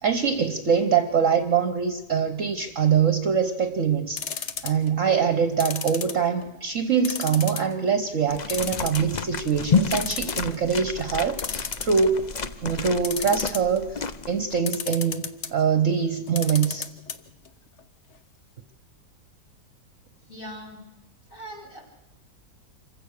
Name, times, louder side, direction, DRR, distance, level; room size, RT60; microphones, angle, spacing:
voice 1, 0.0-12.2 12.6-15.2 15.5-16.9, right 6 dB, 50° right, 8 dB, 1.2 m, -24 dB
sound 1, 4.2-4.9 5.6-6.6 7.0-7.7 8.1-8.2 8.5-9.3 9.7-9.8 9.9-10.5 11.4-12.3 13.0-13.8 14.7-15.5 16.3-17.2 17.5-17.6 17.8-17.9, left 6 dB, 50° left, 1.1 m, -32 dB
sound 2, 8.3-14.6, left 5 dB, 75° left, 0.4 m, -30 dB
voice 2, 20.3-20.8 21.3-21.8, equal, 30° left, 2 dB, 4.6 m, -40 dB
26.5 x 15.5 x 6.5 m, 1.0 s
omnidirectional pair, 1.9 m